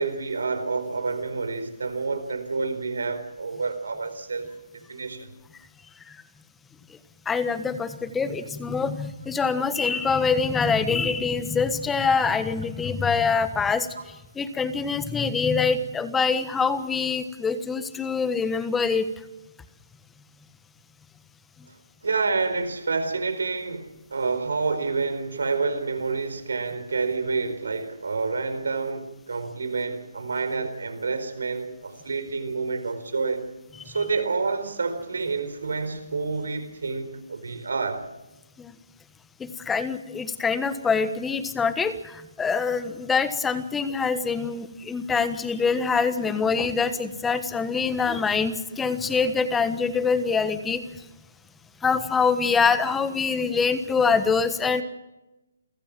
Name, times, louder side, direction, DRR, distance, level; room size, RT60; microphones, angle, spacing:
voice 1, 0.0-4.5 4.7-5.3 22.0-33.4 33.8-38.0 44.4-44.5, right 4 dB, 80° right, 4.4 m, -28 dB
voice 2, 7.3-13.9 14.3-19.1 38.6-38.7 39.4-50.8 51.8-54.8, left 5 dB, 10° left, 1.3 m, -24 dB
28.0 x 15.5 x 7.5 m
hypercardioid pair, 150°, 0 cm